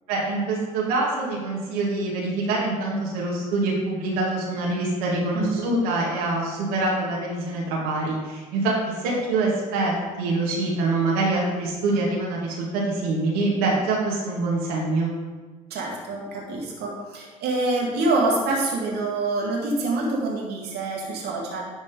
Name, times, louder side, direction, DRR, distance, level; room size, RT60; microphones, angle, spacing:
voice 1, 0.1-15.1, right 2 dB, 75° right, -4 dB, 2.0 m, -25 dB
voice 2, 5.3-5.7 15.7-21.6, right 2 dB, 60° right, -1 dB, 2.0 m, -26 dB
11.0 x 4.3 x 5.1 m, 1.4 s
hypercardioid pair, 60°, 19 cm